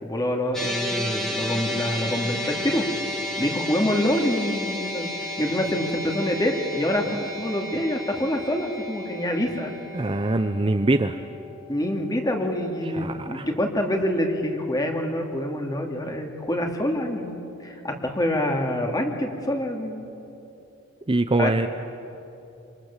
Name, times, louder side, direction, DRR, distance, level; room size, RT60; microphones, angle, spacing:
voice 1, 0.0-2.9 3.4-9.7 11.7-20.0 21.4-21.6, left 1 dB, 20° left, 2 dB, 2.7 m, -26 dB
sound 1, 0.5-13.0, left 1 dB, ahead, 2.5 m, -33 dB
voice 2, 9.9-11.2 13.0-13.5 21.1-21.7, right 2 dB, 25° right, 8 dB, 0.7 m, -23 dB
27.5 x 27.0 x 7.4 m, 2.8 s
head